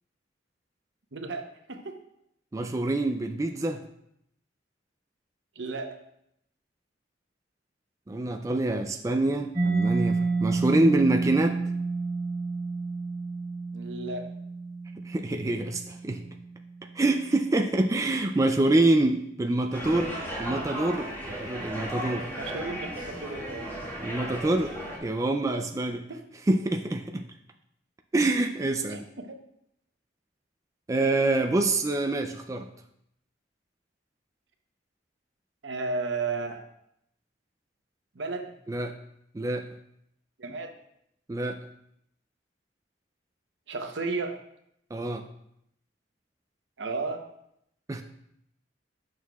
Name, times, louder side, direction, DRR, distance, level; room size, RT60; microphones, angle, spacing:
voice 1, 1.1-2.0 5.6-5.9 13.7-14.3 22.4-23.7 26.1-26.2 28.9-29.4 35.6-36.6 38.1-38.5 40.4-40.7 43.7-44.4 46.8-47.2, right 3 dB, 75° right, 5 dB, 0.8 m, -33 dB
voice 2, 2.5-3.8 8.1-11.6 15.1-16.2 17.0-20.1 20.4-21.1 21.4-22.3 24.0-24.7 25.0-26.1 26.5-27.3 28.1-29.0 30.9-32.7 38.7-38.9 39.3-39.7 41.3-41.6 44.9-45.2 47.9-48.0, right 2 dB, 20° right, 4 dB, 0.3 m, -26 dB
Mallet percussion, 9.5-17.0, right 3 dB, 55° right, 1.5 m, -30 dB
sound 1, 19.7-25.0, equal, 15° left, 1.9 m, -35 dB
9.2 x 6.4 x 2.3 m, 0.75 s
head